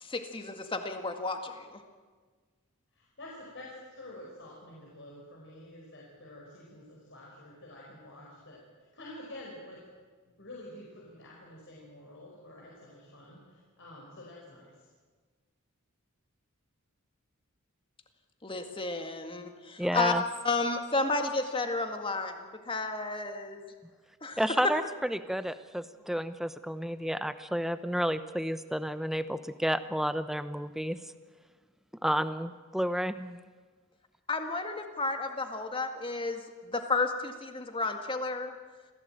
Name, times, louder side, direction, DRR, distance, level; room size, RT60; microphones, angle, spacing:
voice 1, 0.0-1.8 18.4-20.1 20.4-23.6 24.2-24.6 34.3-38.5, left 3 dB, 25° left, 5 dB, 2.0 m, -32 dB
voice 2, 2.9-8.6 8.9-9.8 10.2-14.9, left 1 dB, 55° left, -3 dB, 5.0 m, -48 dB
voice 3, 19.8-20.2 24.4-31.0 32.0-33.4, equal, ahead, 12 dB, 0.7 m, -31 dB
26.5 x 16.5 x 9.0 m, 1.5 s
head